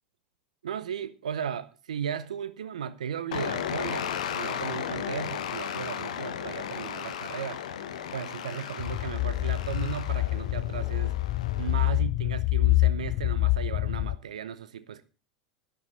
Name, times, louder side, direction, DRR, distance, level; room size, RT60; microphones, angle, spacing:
voice 1, 0.6-7.6 8.1-11.2 11.6-15.0, right 8 dB, 70° right, 0.8 m, -36 dB
sound 1, 3.3-12.0, left 9 dB, 65° left, 1.4 m, -35 dB
sound 2, 8.8-14.2, left 19 dB, 45° left, 0.5 m, -26 dB
12.0 x 10.0 x 5.5 m
figure-of-eight pair, 85°, 4 cm